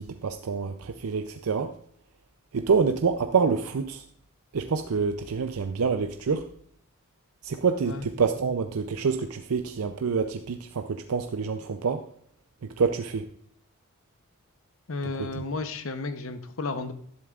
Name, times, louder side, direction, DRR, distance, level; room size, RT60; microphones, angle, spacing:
voice 1, 0.0-1.7 2.5-4.0 4.5-6.5 7.4-12.0 12.8-13.2 15.3-15.4, right 5 dB, 85° right, 7 dB, 0.5 m, -27 dB
voice 2, 14.9-16.9, left 3 dB, 65° left, 9 dB, 0.8 m, -33 dB
11.5 x 10.5 x 2.4 m, 0.63 s
head